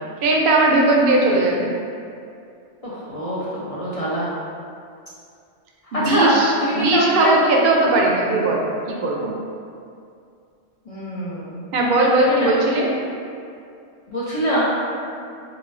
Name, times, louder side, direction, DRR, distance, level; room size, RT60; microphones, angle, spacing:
voice 1, 0.2-1.7 5.9-9.3 11.7-12.9, right 2 dB, 60° right, -1 dB, 0.6 m, -18 dB
voice 2, 2.8-4.3 5.9-6.3 6.6-7.4 10.9-11.6 14.1-14.7, right 1 dB, 45° left, -8 dB, 0.4 m, -24 dB
4.9 x 2.3 x 2.4 m, 2.4 s
omnidirectional pair, 1.2 m